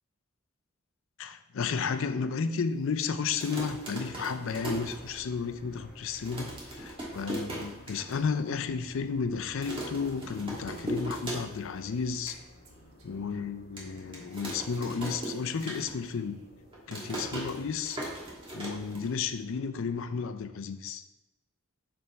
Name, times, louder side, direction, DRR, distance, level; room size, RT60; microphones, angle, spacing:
voice 1, 1.2-12.3 13.0-16.4 16.9-18.0 18.5-21.0, left 5 dB, 65° left, 10 dB, 0.5 m, -33 dB
sound 1, 3.2-5.5 5.8-5.9 6.1-8.2 8.6-8.7 8.9-9.2 9.6-11.8 12.0-12.4 12.9-13.0 13.8-16.2 16.5-19.4, right 1 dB, 25° right, 1.4 m, -38 dB
sound 2, 4.5-20.6, left 1 dB, 45° left, 1.1 m, -55 dB
Female speech woman speaking, 10.1-12.4 12.6-13.4 14.4-16.5, right 2 dB, 90° right, 1.1 m, -57 dB
6.7 x 3.6 x 4.3 m, 0.99 s
head